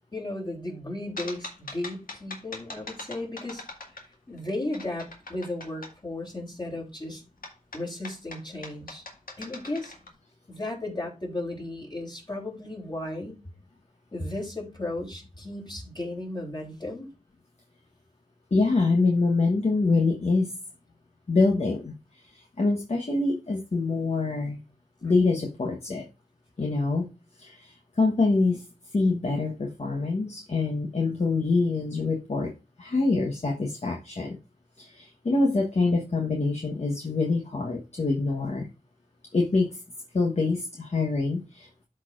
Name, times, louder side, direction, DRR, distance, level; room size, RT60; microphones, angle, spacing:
voice 1, 0.1-3.6 4.3-7.2 7.7-9.0 9.4-9.9 10.5-13.4 14.1-17.1, left 1 dB, 30° left, 3.3 m, -35 dB
sound 1, 1.2-4.4 4.7-5.9 7.4-10.1, left 2 dB, 75° left, 1.8 m, -41 dB
voice 2, 18.5-20.5 21.3-21.9 22.3-24.6 25.0-26.1 26.6-27.1 27.4-28.6 28.9-34.4 34.8-38.7 39.3-39.8 40.1-41.8, left 3 dB, 50° left, 1.2 m, -25 dB
13.0 x 4.3 x 2.5 m
wide cardioid pair, 60°, 15 cm